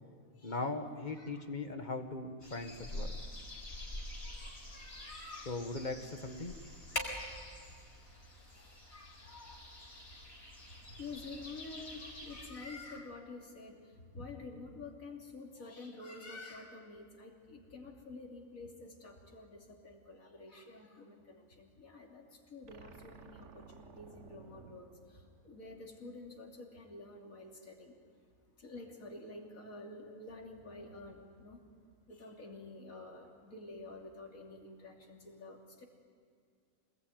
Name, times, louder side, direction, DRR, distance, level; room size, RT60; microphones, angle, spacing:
voice 1, 0.4-3.1 5.5-6.5, left 3 dB, 35° left, 7 dB, 1.8 m, -39 dB
voice 2, 1.1-1.4 4.2-5.6 8.4-9.7 10.9-28.0 28.6-31.6 32.1-35.8, left 3 dB, 85° left, 0 dB, 3.4 m, -49 dB
sound 1, 2.4-12.5, left 1 dB, 50° left, 5.3 m, -45 dB
sound 2, 22.7-26.0, right 5 dB, 60° right, 1.5 m, -56 dB
26.5 x 20.5 x 9.5 m, 2.2 s
omnidirectional pair, 1.4 m